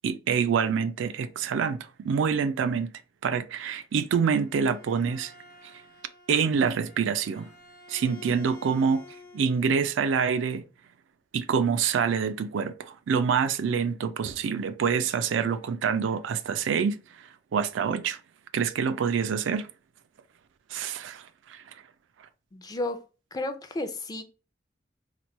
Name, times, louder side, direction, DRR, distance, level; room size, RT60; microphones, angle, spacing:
voice 1, 0.0-2.9 3.2-5.3 6.3-7.5 7.9-9.0 9.3-10.6 11.3-17.0 17.5-18.2 18.5-19.7 20.7-21.2 21.5-21.6, right 6 dB, 90° right, 0.4 m, -26 dB
Bowed string instrument, 4.2-9.8, left 3 dB, 55° left, 1.0 m, -50 dB
voice 2, 22.5-23.0 23.3-24.2, left 2 dB, 20° left, 0.4 m, -32 dB
3.0 x 2.2 x 4.1 m
head